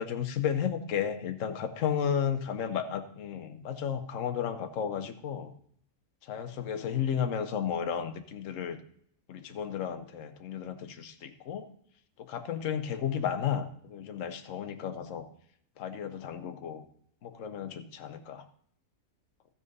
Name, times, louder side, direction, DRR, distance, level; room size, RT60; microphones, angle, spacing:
voice 1, 0.0-5.5 6.2-8.8 9.3-11.7 12.2-15.3 15.8-16.9 17.2-18.5, left 8 dB, 60° left, 8 dB, 1.2 m, -33 dB
14.0 x 6.1 x 5.4 m, 0.65 s
omnidirectional pair, 1.6 m